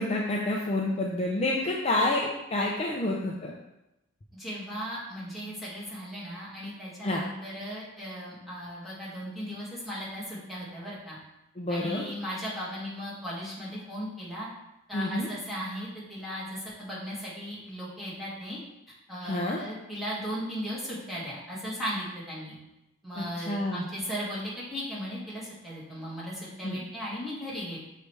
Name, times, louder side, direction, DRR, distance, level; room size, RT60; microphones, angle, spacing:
voice 1, 0.0-3.5 7.0-7.2 11.6-12.0 14.9-15.3 19.2-19.6 23.2-23.8 26.6-26.8, left 1 dB, 30° left, -2 dB, 0.5 m, -28 dB
voice 2, 4.3-11.2 11.7-14.5 14.9-18.6 18.9-22.6 23.0-27.8, equal, ahead, -9 dB, 1.9 m, -37 dB
6.6 x 3.3 x 4.6 m, 0.92 s
head